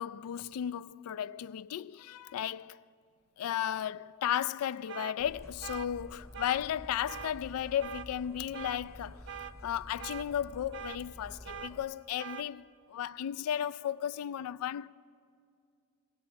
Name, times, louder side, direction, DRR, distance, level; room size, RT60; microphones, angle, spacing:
voice 1, 0.0-2.8 3.4-14.9, left 10 dB, 90° left, 0.3 m, -35 dB
sound 1, 4.9-5.2 5.6-5.9 6.3-6.6 7.1-7.3 7.8-8.1 8.5-8.8 9.3-9.5 10.0-10.3 10.7-11.0 11.5-11.7 12.2-12.5, right 8 dB, 55° right, 0.5 m, -42 dB
sound 2, 5.2-11.8, equal, 10° left, 0.7 m, -50 dB
18.0 x 18.0 x 3.4 m
head